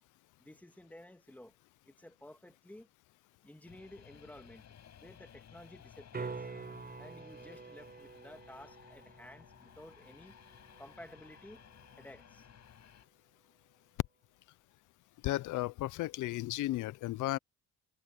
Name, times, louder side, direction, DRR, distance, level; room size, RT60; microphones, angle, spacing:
voice 1, 0.4-1.6 1.9-2.9 3.4-4.6 5.0-6.5 7.0-10.3 10.8-11.6 12.0-12.5 16.7-17.1, left 1 dB, 5° left, 2.1 m, -53 dB
sound 1, 3.6-13.0, left 9 dB, 60° left, 7.3 m, -58 dB
sound 2, 6.1-12.2 16.8-16.9, right 4 dB, 30° right, 4.7 m, -48 dB
voice 2, 15.2-17.4, left 16 dB, 80° left, 0.6 m, -34 dB
cardioid pair, 90°, 30 cm